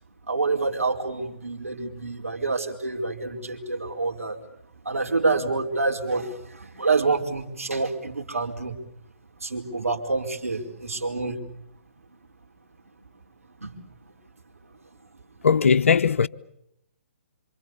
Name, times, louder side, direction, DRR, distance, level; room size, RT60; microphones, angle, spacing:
voice 1, 0.3-4.4 4.8-8.8 9.4-11.4 13.0-13.1 13.6-13.8 14.7-14.8 15.1-15.2, right 3 dB, 85° right, 4.8 m, -27 dB
voice 2, 15.4-16.3, left 6 dB, 70° left, 0.9 m, -19 dB
28.0 x 26.5 x 7.0 m
figure-of-eight pair, 135°, 7 cm